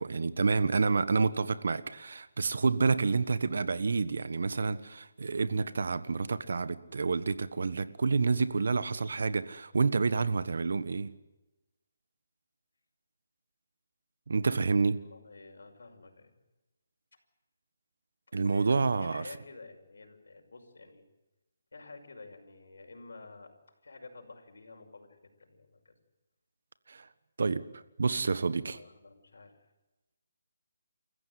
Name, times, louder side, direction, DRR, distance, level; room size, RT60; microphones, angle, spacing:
voice 1, 0.0-11.1 14.3-15.0 18.3-19.3 26.9-27.1 27.4-28.8, right 4 dB, 70° right, 14 dB, 1.4 m, -29 dB
voice 2, 15.0-16.3 18.3-21.1 21.7-23.5 23.8-25.9 28.7-29.5, left 3 dB, 80° left, 3 dB, 5.7 m, -50 dB
28.5 x 15.0 x 9.6 m, 1.0 s
hypercardioid pair, 165°, 0 cm